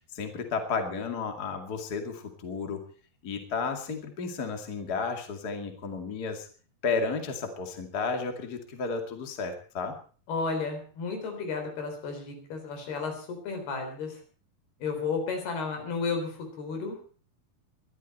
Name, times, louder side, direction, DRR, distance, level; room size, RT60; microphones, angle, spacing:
voice 1, 0.1-2.8 3.2-6.5 6.8-10.0, left 4 dB, 30° left, 5 dB, 2.3 m, -32 dB
voice 2, 10.3-14.1 14.8-17.0, left 4 dB, 85° left, 4 dB, 6.0 m, -33 dB
21.5 x 12.5 x 4.4 m, 0.40 s
omnidirectional pair, 4.4 m